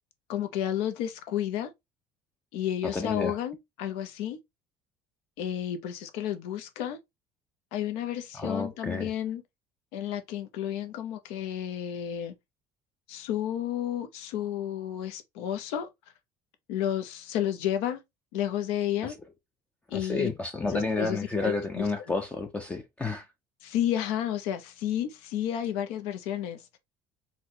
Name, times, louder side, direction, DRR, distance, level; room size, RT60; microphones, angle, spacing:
voice 1, 0.3-1.7 2.5-4.4 5.4-7.0 7.7-9.4 9.9-12.3 13.1-15.9 16.7-18.0 18.3-19.1 19.9-20.3 20.6-22.1 23.6-26.7, left 11 dB, 85° left, 0.6 m, -31 dB
voice 2, 2.9-3.3 8.4-9.1 19.9-23.2, left 3 dB, 15° left, 0.4 m, -30 dB
4.1 x 2.2 x 2.6 m
cardioid pair, 135°, 10 cm